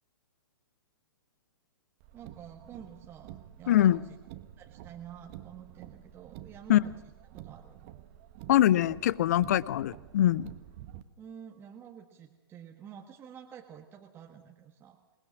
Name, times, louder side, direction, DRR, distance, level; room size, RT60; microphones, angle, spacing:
Car, 2.0-11.0, right 13 dB, 30° right, 1.2 m, -49 dB
voice 1, 2.1-4.2 4.6-7.8 11.2-15.0, right 8 dB, 15° right, 2 dB, 1.6 m, -49 dB
voice 2, 3.7-4.0 6.7-6.8 8.5-10.5, left 12 dB, 45° left, 21 dB, 0.7 m, -23 dB
27.5 x 20.0 x 6.1 m, 1.1 s
figure-of-eight pair, 115°, 13 cm